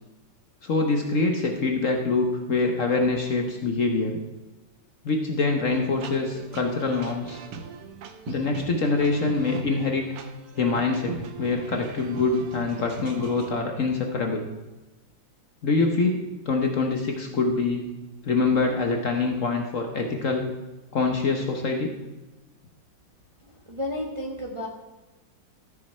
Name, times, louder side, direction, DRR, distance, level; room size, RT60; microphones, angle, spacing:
voice 1, 0.6-4.2 5.0-7.4 8.3-10.1 10.6-14.4 15.6-17.9 18.2-20.5 20.9-21.9, left 3 dB, 50° left, 3 dB, 1.1 m, -25 dB
sound 1, 5.7-13.5, right 5 dB, 60° right, 1.1 m, -40 dB
voice 2, 23.4-24.7, left 1 dB, 20° right, 0 dB, 0.9 m, -32 dB
13.5 x 6.4 x 4.3 m, 1.1 s
omnidirectional pair, 2.0 m